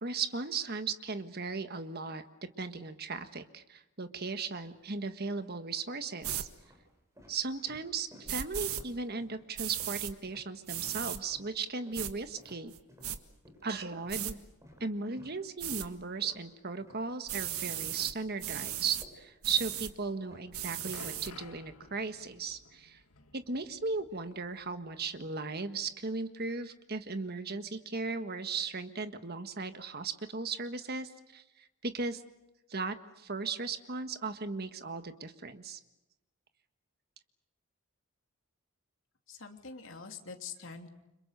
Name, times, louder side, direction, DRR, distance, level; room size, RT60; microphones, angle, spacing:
voice 1, 0.0-6.5 7.3-12.7 13.6-14.4 14.8-23.0 23.3-32.2 32.7-35.8, right 4 dB, 45° right, 9 dB, 1.5 m, -37 dB
sound 1, 4.8-5.2 5.9-11.1 11.3-17.6 17.9-21.6, equal, 15° right, 6.8 m, -58 dB
sound 2, 6.2-6.5 8.3-8.8 9.6-10.1 10.7-11.2 11.9-12.1 12.7-13.2 14.1-14.3 15.6-15.9 17.3-18.1 18.4-19.1 19.4-19.9 20.5-21.3, right 11 dB, 80° right, 1.6 m, -36 dB
sound 3, 20.3-25.2 25.5-25.6 26.4-26.5, left 3 dB, 85° left, 1.8 m, -54 dB
voice 2, 39.3-40.9, left 5 dB, 60° left, 4 dB, 3.0 m, -45 dB
29.5 x 26.0 x 6.7 m, 0.96 s
head